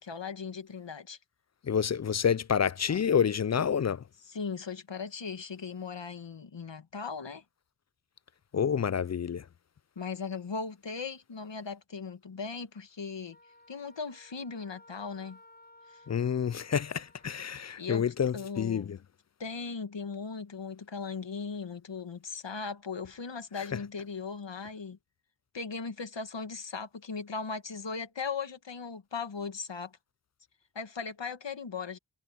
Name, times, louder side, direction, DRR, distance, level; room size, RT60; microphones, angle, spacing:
voice 1, 0.0-1.2 2.9-3.0 4.3-7.4 9.9-13.4 13.7-15.4 15.9-16.0 17.6-18.1 18.3-19.0 19.4-25.0 25.5-30.0 30.7-32.0, left 5 dB, 80° left, 1.7 m, -38 dB
voice 2, 1.6-4.0 8.5-9.4 16.1-19.0, left 7 dB, 40° left, 0.4 m, -28 dB
Wind instrument woodwind instrument, 13.3-17.4, left 1 dB, 20° left, 5.6 m, -57 dB
wide cardioid pair, 45°, 43 cm